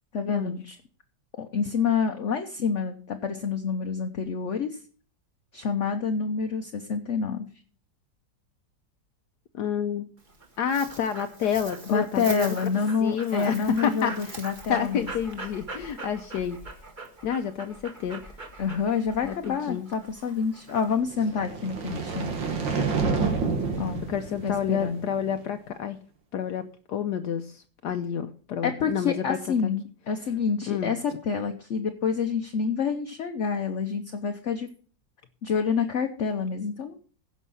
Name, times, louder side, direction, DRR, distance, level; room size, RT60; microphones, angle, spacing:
voice 1, 0.1-0.8 1.4-4.8 5.5-7.5 11.9-15.1 18.6-22.3 23.8-24.1 24.4-25.0 28.6-34.7 35.4-37.0, left 5 dB, 55° left, 6 dB, 0.9 m, -28 dB
voice 2, 9.5-10.1 10.6-12.6 13.0-14.4 14.7-16.6 17.2-18.2 19.2-19.9 24.1-26.0 26.3-29.7 30.7-30.9, left 8 dB, 70° left, 7 dB, 1.2 m, -29 dB
Dog, 10.2-21.0, right 3 dB, 25° right, 1.5 m, -42 dB
sound 1, 21.1-25.4, right 4 dB, 85° right, 2.4 m, -29 dB
15.5 x 5.5 x 5.6 m, 0.43 s
omnidirectional pair, 2.0 m